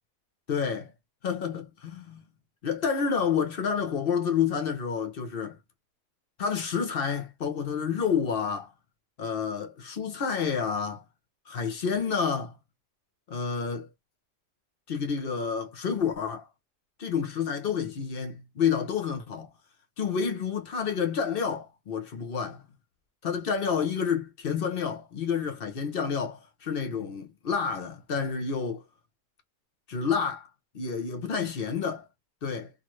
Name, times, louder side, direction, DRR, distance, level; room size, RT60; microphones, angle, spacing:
voice 1, 0.5-0.9 1.2-2.2 2.6-5.6 6.4-8.7 9.2-11.0 11.5-12.5 13.3-13.9 14.9-16.5 17.0-19.5 20.0-22.6 23.2-28.8 29.9-30.5 30.7-32.1 32.4-32.7, left 6 dB, 55° left, 0.6 m, -29 dB
2.6 x 2.5 x 3.0 m
omnidirectional pair, 1.7 m